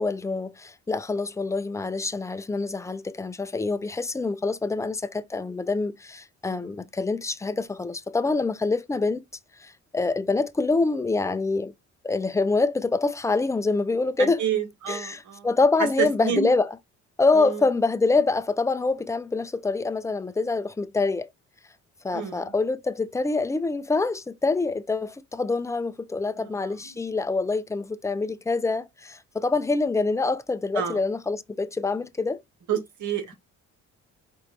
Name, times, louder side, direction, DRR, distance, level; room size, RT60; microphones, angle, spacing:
voice 1, 0.0-9.2 9.6-11.7 12.0-14.4 14.9-16.7 17.2-21.3 22.0-32.4 32.7-32.8, left 3 dB, 10° left, 0.4 m, -25 dB
voice 2, 6.4-6.8 14.2-15.5 16.0-16.5 17.3-17.6 22.1-22.5 26.4-26.9 30.7-31.0 32.7-33.4, right 8 dB, 75° right, 1.5 m, -30 dB
4.4 x 2.5 x 4.3 m
cardioid pair, 90°, 30 cm